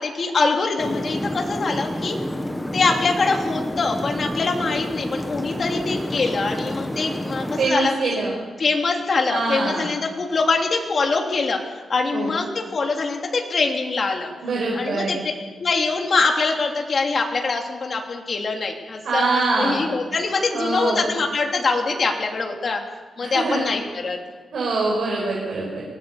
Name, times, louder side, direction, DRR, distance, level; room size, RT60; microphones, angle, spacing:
voice 1, 0.0-2.1 2.7-8.2 8.6-11.6 11.9-14.3 14.7-15.2 15.6-22.8 23.2-24.2, left 4 dB, 40° left, 2 dB, 3.0 m, -23 dB
sound 1, 0.8-7.7, left 1 dB, 5° left, 1.2 m, -29 dB
voice 2, 7.6-8.3 9.3-9.9 12.1-12.3 14.4-15.2 19.0-19.8 20.5-21.1 23.2-23.7 24.5-25.8, right 3 dB, 65° right, -3 dB, 5.9 m, -24 dB
24.0 x 18.0 x 7.1 m, 1.4 s
wide cardioid pair, 165°, 0 cm